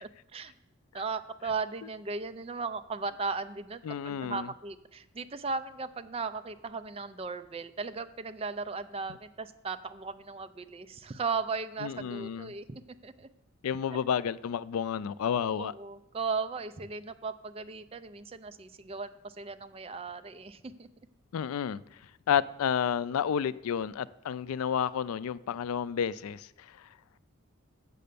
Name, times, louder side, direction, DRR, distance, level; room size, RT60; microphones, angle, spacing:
voice 1, 0.0-0.5 0.9-13.3 15.6-20.9, right 4 dB, 25° right, 0.4 m, -37 dB
voice 2, 3.8-4.5 11.8-12.5 13.6-15.7 21.3-21.8 22.3-26.7, left 8 dB, 85° left, 0.3 m, -31 dB
7.7 x 6.7 x 6.7 m
head